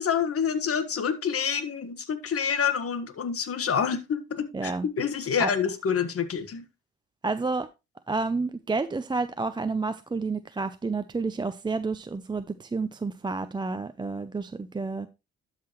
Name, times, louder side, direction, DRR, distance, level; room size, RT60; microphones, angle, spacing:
voice 1, 0.0-6.6, left 7 dB, 50° left, 11 dB, 1.4 m, -27 dB
voice 2, 4.5-4.9 5.4-5.5 7.2-7.7 8.1-15.1, right 3 dB, 15° right, 11 dB, 0.4 m, -30 dB
12.0 x 5.7 x 3.0 m, 0.25 s
cardioid pair, 90°, 30 cm